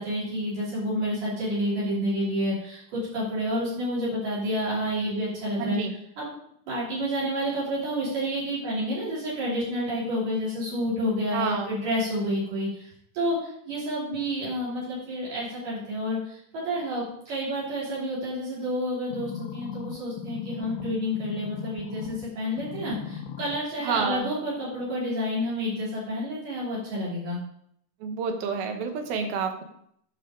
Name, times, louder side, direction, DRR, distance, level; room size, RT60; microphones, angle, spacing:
voice 1, 0.0-5.8 6.2-6.3 6.7-12.9 13.1-13.4 13.7-27.4, equal, 65° right, -9 dB, 4.4 m, -29 dB
voice 2, 5.6-5.9 11.3-11.7 23.8-24.3 28.0-29.6, right 5 dB, 85° right, 5 dB, 3.0 m, -29 dB
sound 1, 19.1-22.3 22.6-23.6 24.1-24.2, left 7 dB, 85° left, 2.7 m, -37 dB
11.0 x 6.0 x 3.7 m, 0.70 s
omnidirectional pair, 4.2 m